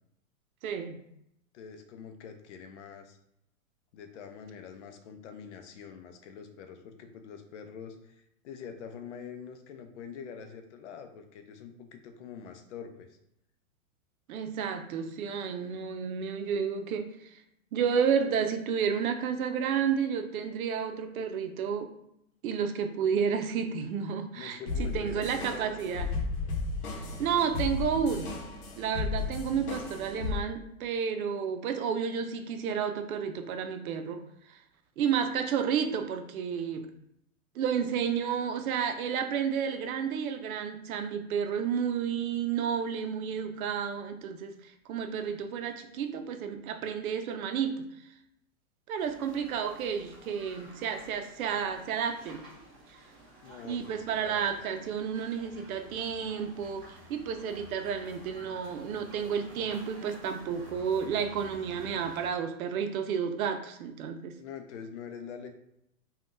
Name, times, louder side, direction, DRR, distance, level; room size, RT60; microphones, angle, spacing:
voice 1, 0.6-1.1 14.3-17.4 17.7-21.9 22.4-26.1 26.9-28.5 28.8-34.2 34.5-34.6 35.0-36.9 37.5-48.0 48.9-52.4 53.6-64.3, right 7 dB, 80° right, 7 dB, 0.5 m, -31 dB
voice 2, 1.5-3.2 3.9-13.2 24.3-26.1 53.4-54.6 64.4-65.5, left 7 dB, 55° left, 7 dB, 0.5 m, -45 dB
sound 1, 24.7-30.4, left 4 dB, 90° left, 0.8 m, -34 dB
sound 2, 49.0-62.3, right 1 dB, 10° right, 0.6 m, -51 dB
3.4 x 2.3 x 2.5 m, 0.77 s
hypercardioid pair, 155°, 42 cm